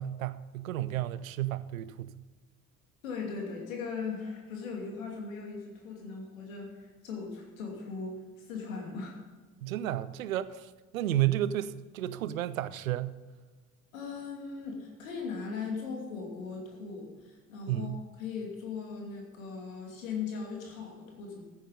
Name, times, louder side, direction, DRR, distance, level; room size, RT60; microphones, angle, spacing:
voice 1, 0.0-2.1 9.6-13.2 17.7-18.0, right 13 dB, 75° right, 0.7 m, -32 dB
voice 2, 3.0-9.2 13.9-21.4, left 5 dB, 70° left, 2.8 m, -39 dB
14.5 x 8.7 x 5.5 m
figure-of-eight pair, 50°, 41 cm